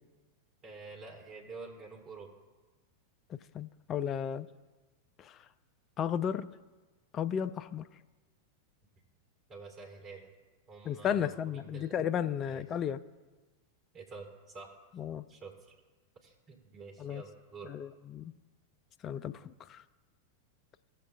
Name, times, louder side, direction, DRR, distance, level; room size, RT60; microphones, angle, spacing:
voice 1, 0.6-2.3 9.5-10.3 10.7-12.0 12.5-12.6 13.9-14.7 15.3-15.8 16.2-17.7, right 4 dB, 20° right, -1 dB, 3.0 m, -48 dB
voice 2, 3.3-4.5 5.2-5.4 6.0-6.5 7.1-7.8 10.9-13.0 15.0-15.2 17.0-17.2 17.7-18.3 19.0-19.8, left 8 dB, 30° left, 12 dB, 0.3 m, -34 dB
17.5 x 7.5 x 2.5 m, 1.2 s
figure-of-eight pair, 90°, 0 cm